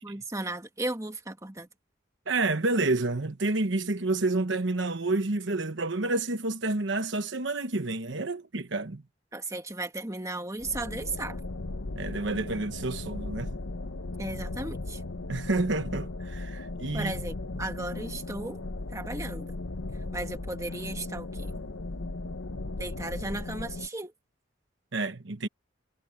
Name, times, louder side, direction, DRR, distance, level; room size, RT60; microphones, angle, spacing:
voice 1, 0.0-1.7 9.3-11.4 14.2-15.0 16.9-18.6 18.9-19.5 20.1-21.5 22.8-24.1, right 2 dB, 15° right, 1.8 m, -35 dB
voice 2, 2.3-9.0 12.0-13.6 15.3-17.1 24.9-25.5, right 2 dB, 65° right, 1.1 m, -29 dB
sound 1, 10.6-23.9, left 2 dB, 90° left, 1.0 m, -37 dB
head